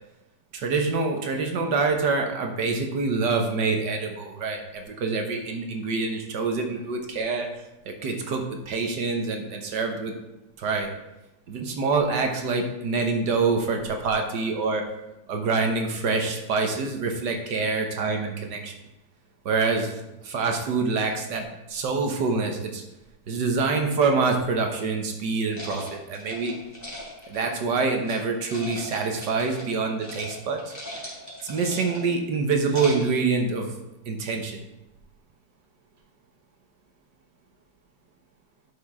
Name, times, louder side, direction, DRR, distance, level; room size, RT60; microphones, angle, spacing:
voice 1, 0.5-7.5 8.0-10.1 10.6-10.9 11.5-14.8 15.3-18.7 19.5-19.9 20.2-22.8 23.3-26.6 27.3-30.7 31.4-33.7 34.1-34.6, right 4 dB, 75° right, 3 dB, 1.7 m, -26 dB
sound 1, 25.5-28.2 28.5-29.7 30.0-30.3 30.6-32.1 32.5-33.2, equal, 10° left, 3.2 m, -39 dB
11.5 x 6.2 x 3.6 m, 0.95 s
omnidirectional pair, 1.9 m